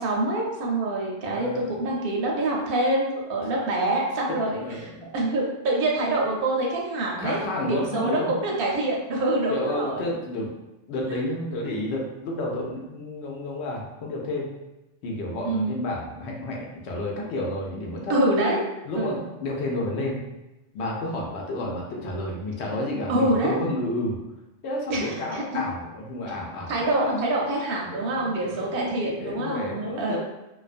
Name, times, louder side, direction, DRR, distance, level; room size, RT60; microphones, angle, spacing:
voice 1, 0.0-10.0 15.4-15.7 18.1-18.6 18.9-19.3 23.1-23.6 24.9-25.4 26.7-30.2, right 2 dB, 60° right, -2 dB, 0.7 m, -26 dB
voice 2, 1.2-1.8 4.3-5.1 7.2-8.3 9.5-10.5 10.9-14.5 15.0-18.1 18.8-20.2 20.7-24.2 24.6-27.2 27.9-30.2, left 1 dB, 65° left, -1 dB, 0.8 m, -31 dB
2.3 x 2.2 x 2.4 m, 1.0 s
omnidirectional pair, 1.3 m